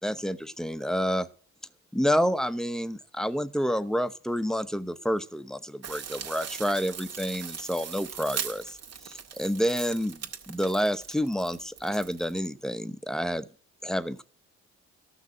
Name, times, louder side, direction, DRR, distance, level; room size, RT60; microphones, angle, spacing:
voice 1, 0.0-1.3 1.9-8.8 9.0-10.2 10.5-13.5 13.8-14.2, equal, ahead, 13 dB, 0.9 m, -29 dB
sound 1, 5.8-12.5, right 7 dB, 55° right, 2.0 m, -40 dB
13.5 x 6.1 x 8.9 m, 0.42 s
cardioid pair, 90°, 30 cm